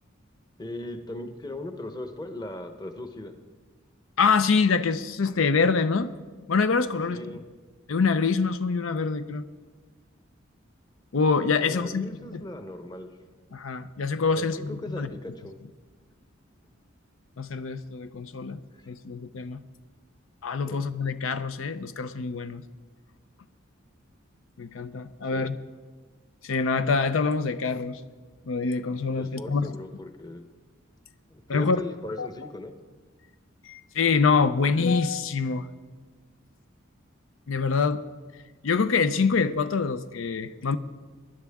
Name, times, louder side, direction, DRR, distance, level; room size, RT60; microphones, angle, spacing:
voice 1, 0.6-3.4 7.1-7.4 11.6-13.1 14.3-15.5 18.7-18.9 20.7-20.8 25.3-25.5 29.1-30.4 31.3-32.7, left 1 dB, 20° left, 7 dB, 0.9 m, -38 dB
voice 2, 4.2-6.1 6.5-7.4 7.9-9.5 11.1-12.4 13.5-15.1 17.4-18.6 18.9-19.6 20.4-22.6 24.6-25.6 26.4-28.0 28.5-29.8 31.5-31.8 32.2-32.3 33.6-35.7 37.5-38.0 38.6-40.8, left 4 dB, 75° left, 11 dB, 0.6 m, -25 dB
23.5 x 11.0 x 3.6 m, 1.4 s
head